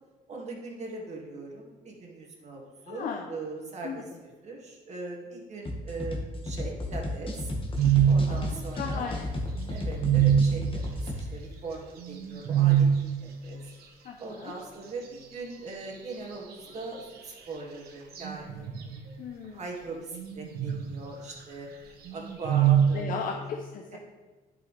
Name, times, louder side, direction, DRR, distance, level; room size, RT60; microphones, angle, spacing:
voice 1, 0.3-7.5 8.0-9.1 9.7-10.8 11.1-12.9 13.2-13.6 14.2-19.1 19.5-21.7 22.1-23.1 23.9-24.0, right 3 dB, 40° right, -1 dB, 2.1 m, -40 dB
voice 2, 2.9-3.3 3.8-4.0 8.3-9.3 14.0-14.5 19.2-19.6 22.9-24.0, left 6 dB, 55° left, 2 dB, 0.7 m, -36 dB
sound 1, 5.7-11.2, left 1 dB, 30° left, 1.4 m, -33 dB
sound 2, 7.8-8.3 8.9-9.0 9.5-10.5 12.0-13.0 16.5-17.0 18.1-19.0 20.1-21.0 22.0-23.0, right 9 dB, 65° right, 1.3 m, -24 dB
10.5 x 5.5 x 3.3 m, 1.3 s
cardioid pair, 110°, 17 cm